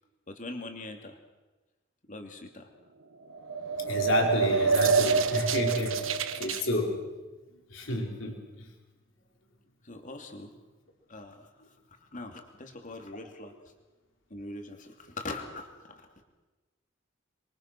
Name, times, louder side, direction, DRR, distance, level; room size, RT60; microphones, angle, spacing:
voice 1, 0.3-1.2 2.1-2.7 9.8-10.5 11.1-13.6 14.3-16.2, left 2 dB, 40° left, 4 dB, 3.0 m, -42 dB
sound 1, 3.3-6.6, right 5 dB, 80° right, 1.5 m, -26 dB
voice 2, 3.9-7.0 7.7-8.4, left 1 dB, 70° left, 1 dB, 4.7 m, -30 dB
26.0 x 23.5 x 6.3 m, 1.2 s
head